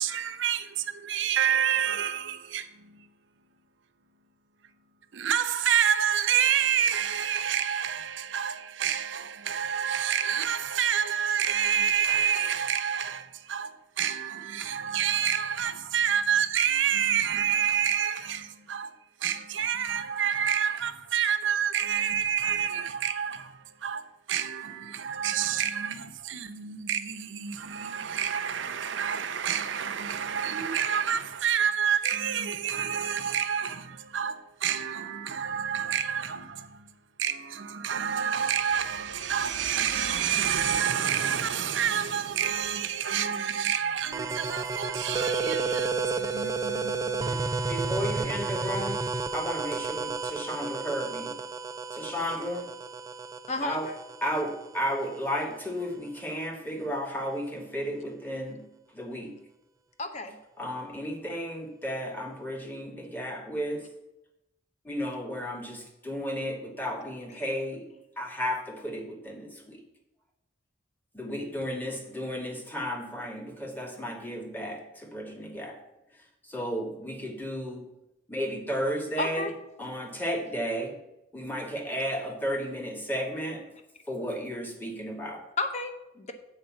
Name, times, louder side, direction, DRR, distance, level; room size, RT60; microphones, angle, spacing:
voice 1, 0.0-3.1 5.1-18.9 19.2-36.9 37.2-47.4, right 8 dB, 70° right, 0.7 m, -28 dB
sound 1, 44.1-55.5, right 4 dB, 15° right, 0.3 m, -32 dB
voice 2, 47.3-49.0 49.3-51.4 51.9-52.7 53.6-53.9 54.2-58.7 58.9-59.4 60.6-63.8 64.8-67.9 68.2-69.8 71.1-75.8 76.5-77.9 78.3-79.4 79.8-81.0 81.3-83.7 84.1-85.4, equal, 10° left, 1.1 m, -33 dB
voice 3, 53.5-53.9 60.0-60.4 67.3-67.5 79.2-79.5 85.6-86.3, left 3 dB, 35° left, 0.8 m, -32 dB
7.7 x 4.7 x 7.0 m
head